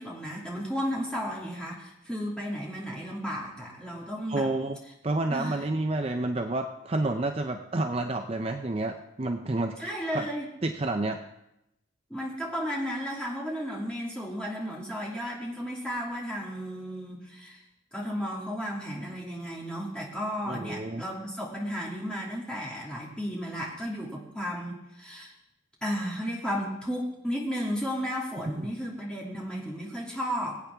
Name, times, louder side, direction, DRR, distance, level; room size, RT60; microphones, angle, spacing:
voice 1, 0.0-4.5 5.3-5.6 9.8-10.5 12.1-17.6 17.9-25.3 25.8-30.6, equal, 5° left, -4 dB, 2.6 m, -34 dB
voice 2, 4.3-4.8 5.0-10.3 10.6-11.2 20.5-21.0 28.4-28.7, right 2 dB, 30° right, 5 dB, 0.5 m, -30 dB
22.5 x 8.7 x 3.5 m, 0.86 s
head